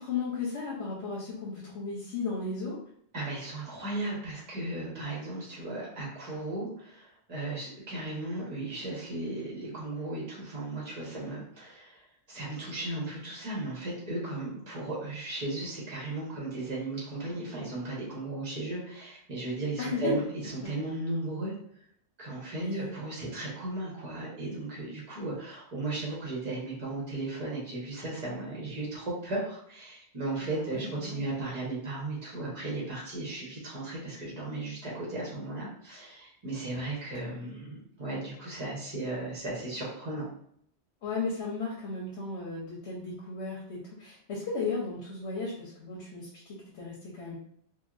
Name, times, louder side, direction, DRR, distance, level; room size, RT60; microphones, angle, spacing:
voice 1, 0.0-2.8 19.8-20.1 22.5-22.9 30.4-31.2 41.0-47.4, left 4 dB, 75° left, -4 dB, 1.0 m, -35 dB
voice 2, 3.1-12.0 12.3-20.2 20.5-21.5 22.2-40.3, right 2 dB, 40° right, -5 dB, 1.2 m, -36 dB
2.8 x 2.6 x 2.4 m, 0.66 s
omnidirectional pair, 1.1 m